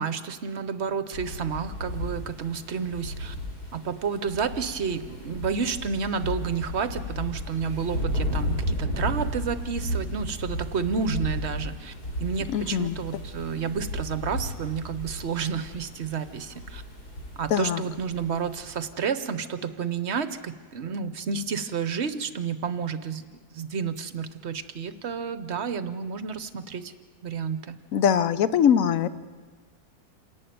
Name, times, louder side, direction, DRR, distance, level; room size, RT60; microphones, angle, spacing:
voice 1, 0.0-3.3 3.7-11.9 12.2-16.8 17.4-23.2 23.5-26.9 27.2-27.8, right 6 dB, 50° right, 12 dB, 1.0 m, -30 dB
sound 1, 1.1-18.9, equal, 90° left, 3.8 m, -34 dB
voice 2, 12.5-13.0 17.5-17.8 27.9-29.1, left 8 dB, 65° left, 14 dB, 1.1 m, -22 dB
27.5 x 11.0 x 9.4 m, 1.5 s
omnidirectional pair, 1.7 m